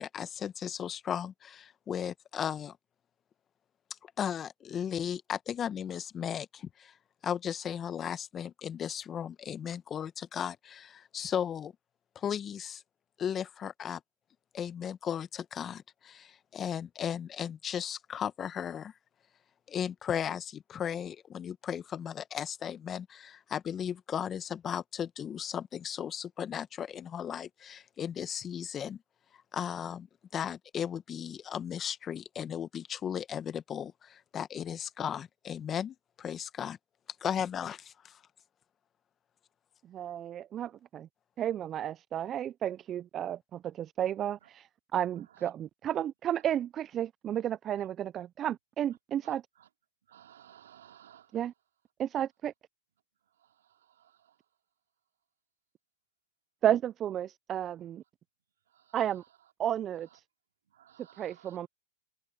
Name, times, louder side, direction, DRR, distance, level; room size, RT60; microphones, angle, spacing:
voice 1, 0.0-2.8 4.2-6.9 7.2-11.7 12.1-12.8 13.2-14.0 14.5-18.9 19.7-29.0 29.5-30.1 30.3-36.8 37.2-38.2, left 8 dB, 25° left, 1.3 m, -36 dB
voice 2, 39.9-41.1 41.4-49.4 51.3-51.5 52.0-52.5 56.6-58.0 58.9-59.2 59.6-60.1 61.2-61.7, right 10 dB, 30° right, 0.4 m, -32 dB
voice 3, 50.1-51.3 60.7-61.6, right 10 dB, 80° right, 4.0 m, -56 dB
hypercardioid pair, 110°, 0 cm